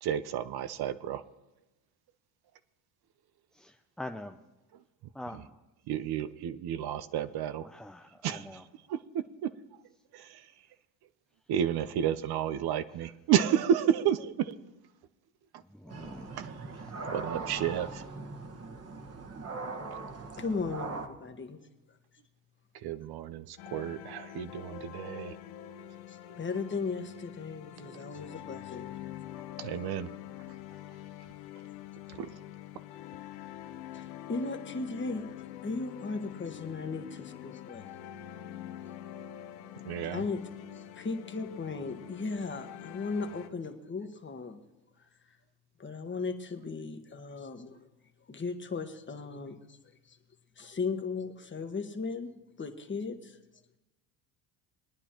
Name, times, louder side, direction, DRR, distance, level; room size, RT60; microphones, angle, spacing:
voice 1, 0.0-1.2 4.7-4.8 5.3-5.4 5.9-7.7 8.2-8.6 8.9-9.5 10.1-10.5 11.5-14.5 16.0-18.1 22.7-25.4 29.6-30.1 30.5-30.6 32.1-32.4 39.8-40.2, right 9 dB, 50° right, 13 dB, 0.7 m, -31 dB
voice 2, 3.5-4.4 5.1-5.6 7.6-8.6 15.7-16.3 16.9-17.1, left 1 dB, ahead, 3 dB, 0.4 m, -44 dB
sound 1, 15.9-21.1, right 3 dB, 30° right, 1.4 m, -40 dB
voice 3, 20.4-21.6 26.1-28.9 29.3-29.4 32.1-32.2 33.9-38.0 39.1-39.2 40.1-40.4 40.7-44.6 45.8-47.8 48.3-49.8 50.1-50.2 50.6-53.4, left 4 dB, 25° left, 6 dB, 1.4 m, -37 dB
sound 2, 23.6-43.5, left 12 dB, 80° left, 1.0 m, -45 dB
21.5 x 9.7 x 3.0 m, 0.99 s
hypercardioid pair, 75°, 49 cm